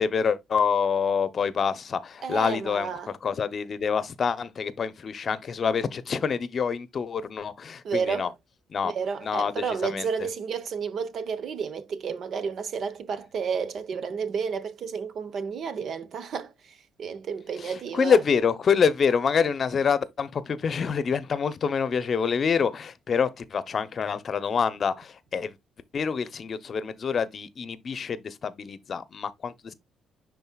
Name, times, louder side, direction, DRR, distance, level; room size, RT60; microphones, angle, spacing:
voice 1, 0.0-8.3 8.7-8.9 9.2-10.3 17.6-25.6 25.9-29.7, left 6 dB, 50° left, 0.7 m, -26 dB
voice 2, 2.2-3.1 7.8-8.3 8.8-16.5 17.0-18.2, right 6 dB, 60° right, 0.9 m, -31 dB
10.5 x 3.8 x 2.3 m
cardioid pair, 90°, 0 cm